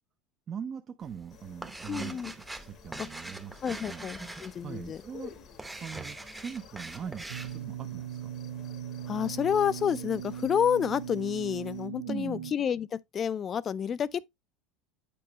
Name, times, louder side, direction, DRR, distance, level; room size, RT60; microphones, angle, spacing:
voice 1, 0.5-2.2 2.6-4.0 4.6-5.4 5.8-8.3 12.0-12.5, right 7 dB, 40° right, 0.6 m, -41 dB
sound 1, 1.0-7.6, right 2 dB, 10° right, 0.8 m, -43 dB
sound 2, 1.3-11.9, left 10 dB, 50° left, 1.1 m, -53 dB
voice 2, 1.9-2.3 3.0-3.1 3.6-5.0 9.1-14.3, left 8 dB, 35° left, 0.5 m, -29 dB
sound 3, 7.3-12.5, right 9 dB, 90° right, 0.5 m, -39 dB
8.5 x 4.6 x 2.9 m
supercardioid pair, 95°, 0 cm